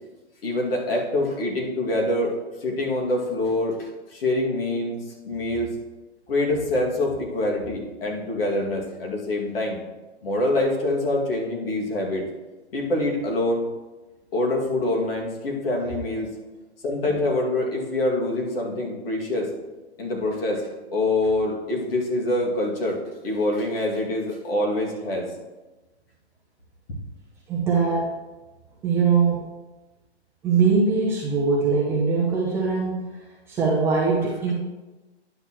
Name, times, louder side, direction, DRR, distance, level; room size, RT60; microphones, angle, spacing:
voice 1, 0.4-2.3 2.6-5.0 5.2-5.7 6.3-9.8 10.2-12.2 12.7-13.6 14.3-16.3 16.8-19.5 20.0-20.6 20.9-23.0 23.2-25.3, left 1 dB, 55° left, -1 dB, 2.2 m, -25 dB
voice 2, 27.5-28.1 28.8-29.5 30.4-33.2 33.5-34.5, right 5 dB, 5° right, -6 dB, 0.6 m, -22 dB
10.0 x 6.6 x 3.0 m, 1.1 s
hypercardioid pair, 150°, 34 cm